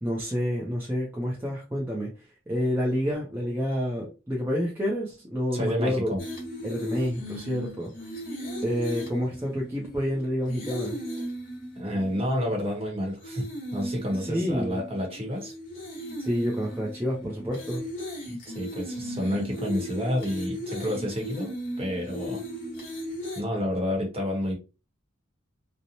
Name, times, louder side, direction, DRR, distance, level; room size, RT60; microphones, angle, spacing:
voice 1, 0.0-2.1 2.5-6.1 6.6-7.9 8.6-11.0 14.2-14.8 16.2-17.8, equal, 10° right, -4 dB, 0.5 m, -28 dB
voice 2, 5.5-6.2 11.8-13.5 13.7-15.5 18.3-22.4 23.3-24.5, equal, 30° right, 0 dB, 0.9 m, -29 dB
sound 1, 6.2-12.8 13.2-23.4, equal, 45° left, 1.1 m, -37 dB
2.8 x 2.0 x 2.6 m, 0.31 s
head